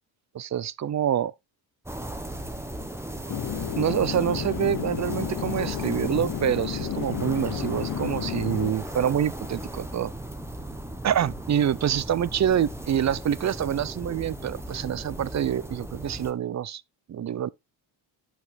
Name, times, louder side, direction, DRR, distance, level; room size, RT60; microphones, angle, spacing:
voice 1, 0.3-1.3 3.2-3.3 3.8-10.1 11.0-16.8 17.1-17.5, right 9 dB, 35° right, 0.6 m, -26 dB
sound 1, 1.9-16.3, right 1 dB, 5° right, 1.6 m, -37 dB
Chatter / Fixed-wing aircraft airplane, 3.3-8.7, left 10 dB, 45° left, 1.0 m, -32 dB
10.5 x 5.9 x 3.7 m
cardioid pair, 110°, 47 cm